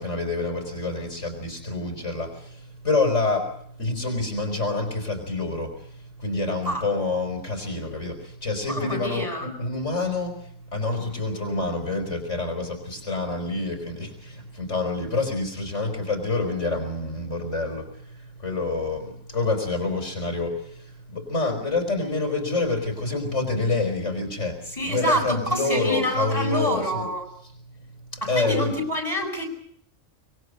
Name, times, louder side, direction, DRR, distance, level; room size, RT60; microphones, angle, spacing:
voice 1, 0.0-27.1 28.1-28.8, left 3 dB, 70° left, 4 dB, 5.2 m, -27 dB
voice 2, 8.7-9.5 24.7-27.3 28.2-29.5, equal, 25° left, 4 dB, 7.9 m, -27 dB
25.5 x 23.0 x 6.7 m, 0.66 s
omnidirectional pair, 1.3 m